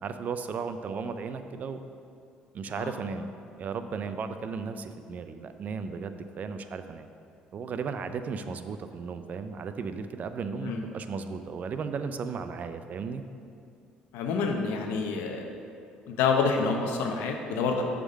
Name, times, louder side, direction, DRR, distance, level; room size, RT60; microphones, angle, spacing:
voice 1, 0.0-1.8 2.5-3.3 3.6-7.1 7.5-13.2, right 5 dB, 50° right, 9 dB, 0.4 m, -35 dB
voice 2, 14.1-15.5 16.1-17.8, left 5 dB, 80° left, 3 dB, 0.8 m, -27 dB
6.7 x 3.7 x 6.3 m, 2.5 s
supercardioid pair, 80°, 3 cm